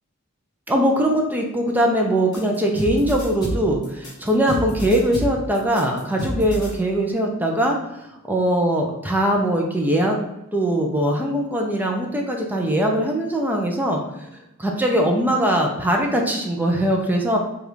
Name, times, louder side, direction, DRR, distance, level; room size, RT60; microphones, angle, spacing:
voice 1, 0.7-10.2 10.5-14.3 14.6-17.4, right 1 dB, 10° right, 1 dB, 0.4 m, -21 dB
sound 1, 2.3-6.7, equal, 20° left, 1.1 m, -29 dB
5.0 x 2.4 x 3.1 m, 0.94 s
head